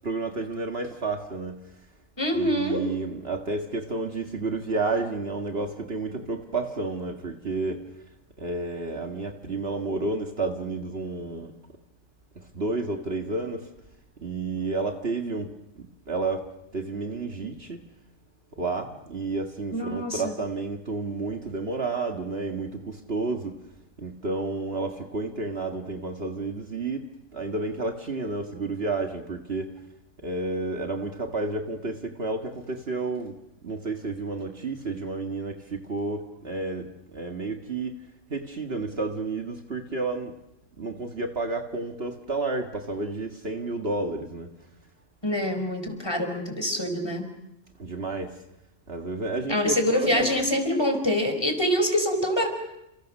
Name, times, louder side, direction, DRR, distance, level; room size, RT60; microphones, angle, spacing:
voice 1, 0.0-1.6 2.4-7.8 8.4-11.5 12.4-13.7 14.2-15.5 15.8-17.8 18.6-23.6 24.0-27.0 27.3-29.7 30.2-33.4 33.6-38.0 38.3-40.3 40.8-44.5 47.8-48.4 48.9-50.4, right 3 dB, 50° right, 4 dB, 2.0 m, -31 dB
voice 2, 2.2-2.9 19.7-20.3 45.2-47.3 49.5-52.5, left 1 dB, 20° left, 6 dB, 4.7 m, -25 dB
29.5 x 28.0 x 6.5 m, 0.86 s
omnidirectional pair, 1.3 m